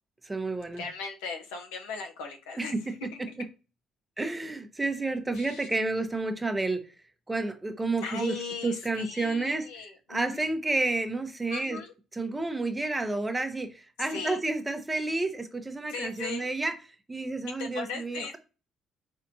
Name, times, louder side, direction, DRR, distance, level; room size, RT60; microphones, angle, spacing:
voice 1, 0.2-0.9 2.6-2.9 4.2-6.8 7.3-8.3 8.6-11.8 12.1-16.7 17.1-18.4, right 2 dB, 15° right, 0.7 m, -30 dB
voice 2, 0.8-2.7 3.1-3.2 5.4-5.7 8.0-10.4 11.5-11.9 14.1-14.4 15.9-16.5 17.6-18.4, left 5 dB, 90° left, 0.6 m, -38 dB
4.2 x 2.6 x 2.6 m
supercardioid pair, 65°, 0 cm